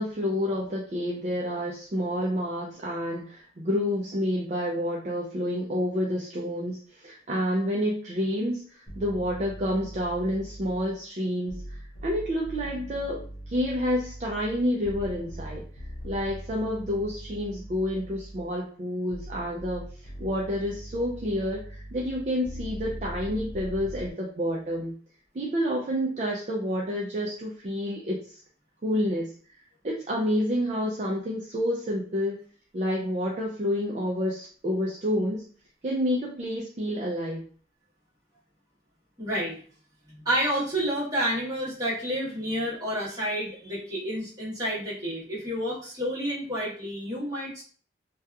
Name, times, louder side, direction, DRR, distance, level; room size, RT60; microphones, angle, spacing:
voice 1, 0.0-15.6 16.0-19.8 20.2-24.9 25.3-28.4 28.8-29.6 29.8-32.4 32.7-35.4 35.8-37.4, equal, 40° right, -3 dB, 0.4 m, -29 dB
sound 1, 8.9-11.0 11.5-18.6 19.1-24.1, equal, 65° left, 0.6 m, -41 dB
voice 2, 39.2-39.6 40.2-47.6, equal, 20° right, -8 dB, 1.2 m, -29 dB
2.8 x 2.3 x 2.3 m, 0.43 s
head